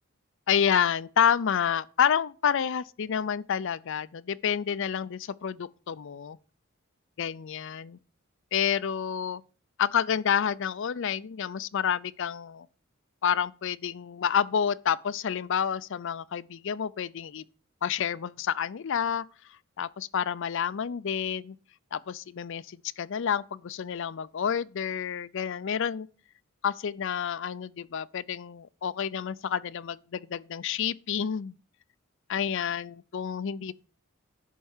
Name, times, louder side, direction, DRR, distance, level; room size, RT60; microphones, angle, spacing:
voice 1, 0.5-6.4 7.2-8.0 8.5-9.4 9.8-12.7 13.2-17.4 17.8-19.2 19.8-21.6 21.9-26.1 26.6-31.5 32.3-33.7, left 8 dB, 65° left, 0.5 m, -29 dB
11.0 x 4.6 x 7.2 m
head